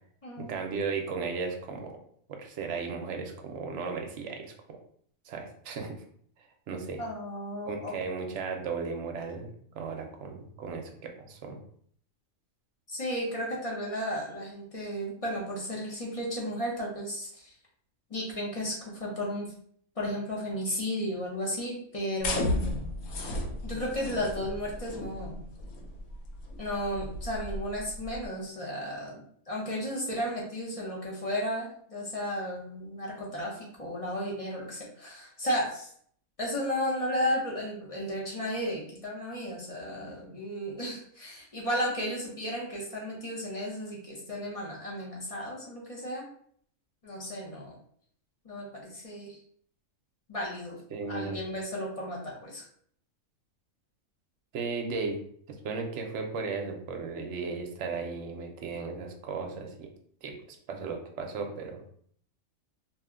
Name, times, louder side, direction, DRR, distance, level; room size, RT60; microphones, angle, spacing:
voice 1, 0.4-1.9 2.4-4.8 5.3-6.0 6.7-7.0 7.7-11.6 50.9-51.4 54.5-55.2 55.5-59.9 60.2-60.4 60.7-61.8, right 4 dB, 65° right, 3 dB, 0.8 m, -35 dB
voice 2, 7.0-7.9 12.9-17.5 18.1-19.5 20.0-22.7 23.6-25.4 26.6-35.9 36.4-46.2 47.0-47.7 48.4-49.4 50.3-50.8 51.1-52.6, equal, 35° left, -4 dB, 0.6 m, -34 dB
sound 1, 22.2-28.3, left 2 dB, 90° left, 1.1 m, -35 dB
2.7 x 2.1 x 3.6 m, 0.62 s
omnidirectional pair, 1.4 m